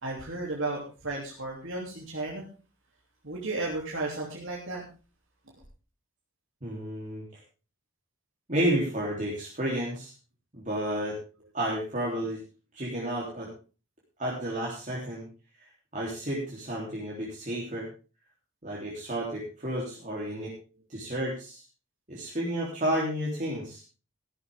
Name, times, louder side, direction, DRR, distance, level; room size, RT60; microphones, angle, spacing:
voice 1, 0.0-2.4 3.2-4.9, right 2 dB, 55° right, -3 dB, 3.1 m, -34 dB
voice 2, 6.6-7.2 8.5-10.1 10.5-11.2 11.5-12.4 12.7-13.5 14.2-15.3 15.6-15.7 15.9-17.9 18.6-20.5 20.9-21.6 22.1-23.8, right 1 dB, 35° right, -5 dB, 3.5 m, -31 dB
15.0 x 12.5 x 3.7 m, 0.34 s
head